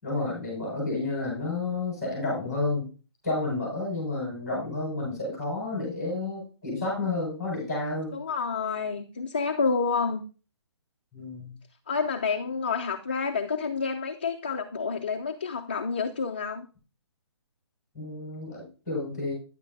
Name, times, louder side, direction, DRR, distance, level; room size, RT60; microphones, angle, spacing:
voice 1, 0.0-2.9 3.2-8.2 11.1-11.5 17.9-19.3, left 2 dB, ahead, -4 dB, 5.3 m, -31 dB
voice 2, 8.1-10.2 11.9-16.7, left 5 dB, 20° left, 3 dB, 0.3 m, -29 dB
9.6 x 8.3 x 2.7 m, 0.35 s
hypercardioid pair, 175°, 14 cm